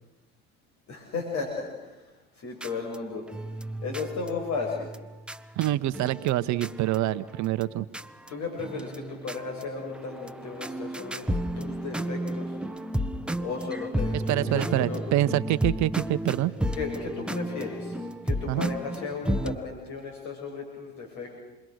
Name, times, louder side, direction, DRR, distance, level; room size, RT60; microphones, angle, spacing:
voice 1, 0.9-2.0 2.3-3.2 3.8-4.9 8.3-11.3 11.5-12.5 13.4-14.2 14.4-15.0 16.7-18.0 18.2-21.4, left 4 dB, 60° left, 1 dB, 6.9 m, -35 dB
sound 1, 2.6-7.6 7.9-8.3 8.6-19.6, equal, 5° right, 1.2 m, -33 dB
voice 2, 5.6-7.8 14.1-16.5 18.5-18.7, right 15 dB, 60° right, 14 dB, 1.1 m, -26 dB
28.5 x 22.0 x 6.5 m, 1.1 s
hypercardioid pair, 65°, 32 cm